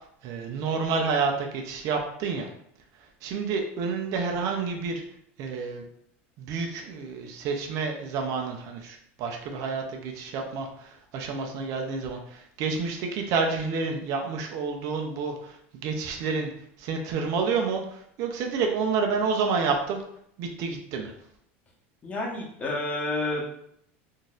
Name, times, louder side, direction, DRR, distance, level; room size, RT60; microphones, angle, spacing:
voice 1, 0.2-2.5 2.9-5.0 5.4-5.8 6.4-16.5 16.8-20.0 20.4-21.2, right 5 dB, 55° right, 3 dB, 0.6 m, -29 dB
voice 2, 22.0-23.4, left 2 dB, 20° left, -3 dB, 1.0 m, -29 dB
3.8 x 2.6 x 2.4 m, 0.70 s
supercardioid pair, 120°, 7 cm